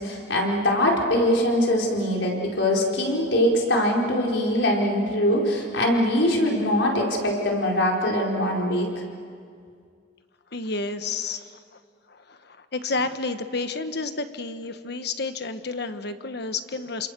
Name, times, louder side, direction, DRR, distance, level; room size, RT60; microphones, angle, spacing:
voice 1, 0.0-8.9, left 1 dB, 75° left, -1 dB, 4.9 m, -22 dB
voice 2, 10.5-11.8 12.1-17.1, left 3 dB, 60° left, 9 dB, 1.2 m, -31 dB
28.5 x 27.5 x 6.8 m, 2.2 s
head